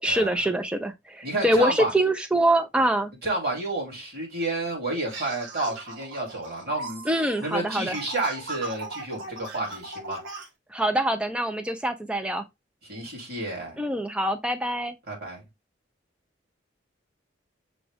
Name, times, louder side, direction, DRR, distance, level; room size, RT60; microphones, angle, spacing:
voice 1, 0.0-3.1 7.1-8.0 10.7-12.4 13.8-14.9, right 1 dB, 5° right, 0.5 m, -24 dB
voice 2, 1.2-1.9 3.2-7.0 7.4-10.2 12.8-13.8 15.1-15.4, right 2 dB, 55° right, 2.6 m, -30 dB
sound 1, 5.1-10.5, right 3 dB, 85° right, 1.2 m, -38 dB
6.1 x 2.4 x 3.4 m
head